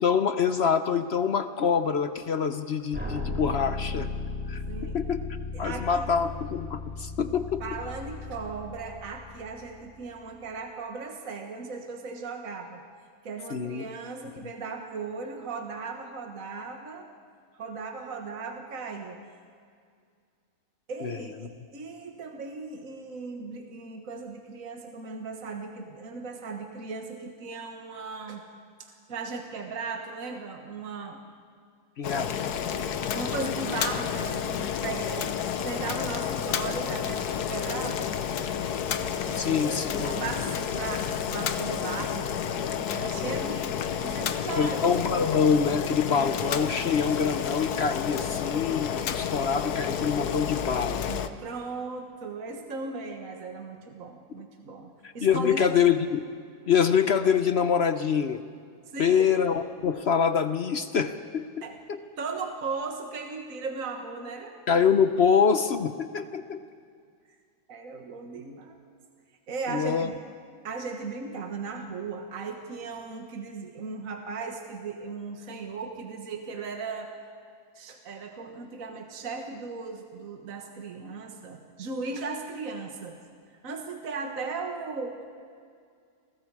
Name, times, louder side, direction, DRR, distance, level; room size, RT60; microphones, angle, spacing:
voice 1, 0.0-4.1 4.5-5.2 5.6-7.6 13.5-13.8 21.0-21.3 32.0-32.5 39.3-40.2 43.1-43.4 44.6-51.1 55.0-56.2 56.7-58.4 59.0-62.0 64.7-66.6 69.7-70.1, left 6 dB, 50° left, 10 dB, 0.9 m, -25 dB
sound 1, 2.9-9.8, left 3 dB, 5° right, 3.3 m, -36 dB
voice 2, 5.5-6.1 7.6-12.8 13.2-17.1 17.5-19.2 20.9-28.4 28.8-31.2 33.1-38.1 39.3-42.3 42.9-43.8 44.0-45.0 51.1-55.7 58.9-59.3 61.6-61.8 62.2-64.6 67.7-68.8 69.5-70.2 70.6-77.1 77.8-83.2 83.6-85.3, right 4 dB, 60° right, 3 dB, 1.8 m, -37 dB
Boiling, 32.0-51.3, left 8 dB, 80° left, 1.4 m, -30 dB
29.5 x 21.5 x 4.8 m, 2.2 s
omnidirectional pair, 1.6 m